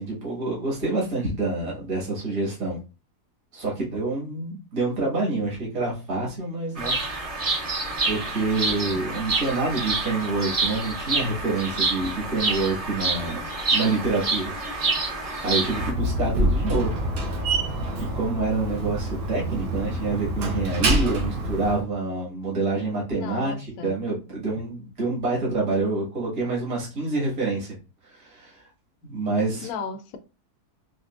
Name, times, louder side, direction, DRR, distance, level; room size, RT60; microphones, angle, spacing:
voice 1, 0.0-2.8 3.5-7.1 7.4-13.4 13.7-14.5 14.8-15.0 15.4-17.0 18.0-23.5 23.8-27.7 28.0-28.6 29.0-29.7, right 3 dB, 60° right, 2.1 m, -27 dB
Bird vocalization bird call bird song, 6.8-15.9, right 3 dB, 40° right, 0.5 m, -27 dB
voice 2, 8.7-9.0 23.1-24.0 29.6-30.2, left 5 dB, 70° left, 1.0 m, -35 dB
Slam, 15.6-21.8, right 1 dB, 90° right, 1.6 m, -26 dB
4.9 x 2.7 x 2.4 m
omnidirectional pair, 1.7 m